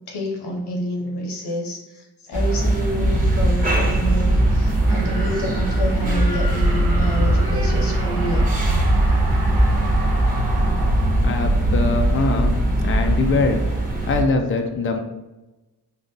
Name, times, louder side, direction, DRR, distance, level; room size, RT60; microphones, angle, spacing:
voice 1, 0.1-1.8 2.3-8.7 12.1-12.2, equal, 85° left, 0 dB, 0.9 m, -28 dB
sound 1, 2.3-14.2, right 1 dB, 20° right, 1.3 m, -22 dB
sound 2, 3.0-13.3, right 1 dB, 55° right, 1.2 m, -23 dB
sound 3, 3.3-12.1, right 2 dB, 80° right, 0.7 m, -34 dB
voice 2, 11.2-13.6 14.1-15.0, left 3 dB, 35° left, 3 dB, 0.5 m, -22 dB
3.7 x 2.4 x 3.9 m, 1.1 s
cardioid pair, 55°, 39 cm